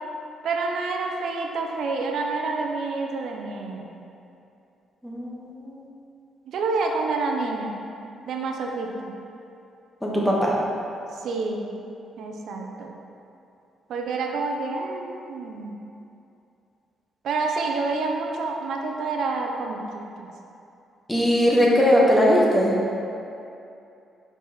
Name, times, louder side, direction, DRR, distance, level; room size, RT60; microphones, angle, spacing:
voice 1, 0.4-3.9 6.5-7.8 8.3-9.1 11.2-11.7 12.2-12.9 13.9-15.7 17.2-20.3, right 3 dB, 70° right, 2 dB, 0.7 m, -28 dB
voice 2, 5.0-5.8 10.0-10.5 21.1-22.7, equal, 5° left, -4 dB, 1.3 m, -20 dB
5.5 x 4.6 x 4.4 m, 2.7 s
cardioid pair, 90°, 0 cm